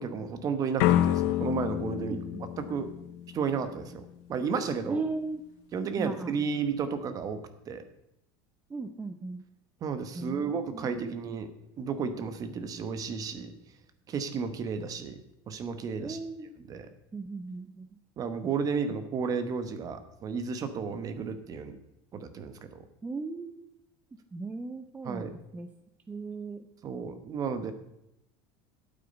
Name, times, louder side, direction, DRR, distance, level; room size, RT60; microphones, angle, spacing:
voice 1, 0.0-2.2 2.6-2.9 3.3-5.0 5.7-7.4 7.7-7.8 9.8-11.5 11.8-13.5 14.1-15.2 15.5-16.2 16.7-16.9 18.2-21.8 22.1-22.6 25.0-25.3 26.8-27.7, right 5 dB, 30° right, 10 dB, 1.0 m, -32 dB
sound 1, 0.8-3.7, left 12 dB, 70° left, 0.7 m, -28 dB
voice 2, 2.0-2.4 4.9-5.4 6.0-6.3 8.7-9.4 10.1-11.0 16.0-16.5 17.1-17.9 23.0-23.7 24.3-25.7 26.1-26.6, right 3 dB, 10° right, 7 dB, 0.5 m, -37 dB
12.0 x 8.7 x 5.3 m, 0.84 s
cardioid pair, 160°, 12 cm